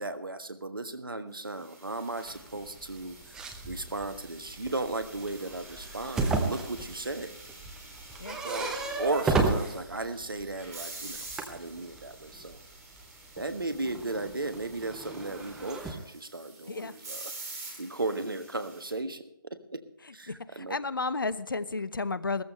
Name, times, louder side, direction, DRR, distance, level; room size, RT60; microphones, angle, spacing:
voice 1, 0.0-7.3 8.4-11.2 11.5-12.6 13.4-17.3 17.8-19.8 20.1-20.8, right 2 dB, 75° right, 9 dB, 1.4 m, -36 dB
sound 1, 1.5-18.9, right 2 dB, 45° right, 6.1 m, -47 dB
sound 2, 2.3-10.7 11.1-15.9, right 3 dB, 5° right, 0.8 m, -34 dB
voice 2, 20.3-22.4, left 3 dB, 70° left, 16 dB, 0.8 m, -32 dB
15.5 x 14.0 x 3.3 m, 0.78 s
figure-of-eight pair, 145°, 12 cm